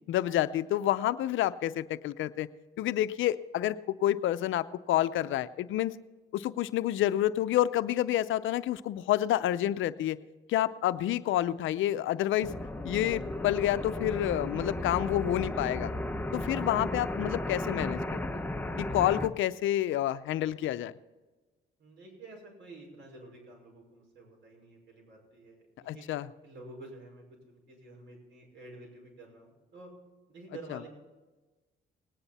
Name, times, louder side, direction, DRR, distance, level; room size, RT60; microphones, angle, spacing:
voice 1, 0.1-2.5 2.8-5.9 6.3-10.2 10.5-12.5 12.8-15.9 16.3-18.5 18.8-20.9 25.9-26.3 30.7-30.8, left 13 dB, 80° left, 14 dB, 0.6 m, -29 dB
sound 1, 12.4-19.3, left 1 dB, 10° left, 0.9 m, -34 dB
voice 2, 21.8-26.0 26.4-29.9 30.3-30.9, right 2 dB, 70° right, 0 dB, 5.6 m, -50 dB
19.0 x 10.0 x 4.2 m, 1.2 s
cardioid pair, 90°, 20 cm